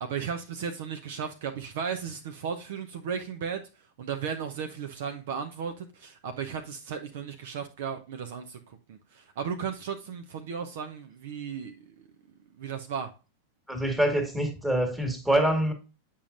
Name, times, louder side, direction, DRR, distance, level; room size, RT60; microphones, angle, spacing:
voice 1, 0.0-3.6 4.0-12.1 12.6-13.1, right 7 dB, 55° right, 0.8 m, -35 dB
voice 2, 13.7-15.7, right 1 dB, 5° right, 1.8 m, -25 dB
8.6 x 5.6 x 2.5 m
figure-of-eight pair, 90°, 0 cm